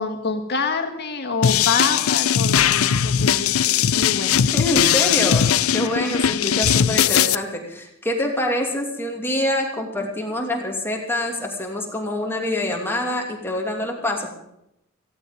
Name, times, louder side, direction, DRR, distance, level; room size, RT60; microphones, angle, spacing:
voice 1, 0.0-4.4 6.3-6.6, left 4 dB, 50° left, 5 dB, 2.0 m, -27 dB
sound 1, 1.4-7.3, left 9 dB, 80° left, 0.6 m, -19 dB
voice 2, 4.5-14.3, left 1 dB, 10° left, 0 dB, 2.8 m, -25 dB
17.0 x 16.0 x 5.4 m, 0.80 s
head